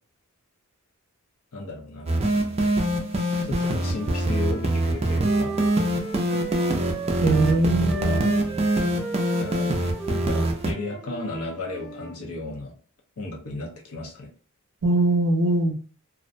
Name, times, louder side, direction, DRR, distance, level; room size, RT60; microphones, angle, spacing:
voice 1, 1.5-2.4 3.4-5.5 7.5-8.2 9.4-12.7 13.2-14.3, left 2 dB, 70° left, 0 dB, 0.8 m, -35 dB
sound 1, 2.1-10.7, right 1 dB, 25° right, 0.4 m, -24 dB
Wind instrument woodwind instrument, 3.7-7.6 7.8-12.2, right 3 dB, 5° left, 0.8 m, -36 dB
voice 2, 7.2-8.5 14.8-15.7, right 2 dB, 80° right, 5 dB, 0.5 m, -22 dB
2.4 x 2.1 x 2.5 m, 0.39 s
head